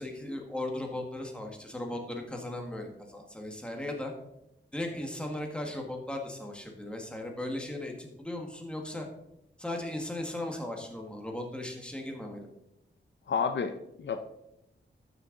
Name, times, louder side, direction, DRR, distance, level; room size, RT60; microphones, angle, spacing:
voice 1, 0.0-4.1 4.7-9.1 9.6-12.5, left 1 dB, 5° left, 1 dB, 1.7 m, -37 dB
voice 2, 13.3-14.2, left 6 dB, 70° left, 8 dB, 0.7 m, -30 dB
12.5 x 6.7 x 3.9 m, 0.85 s
wide cardioid pair, 125°, 19 cm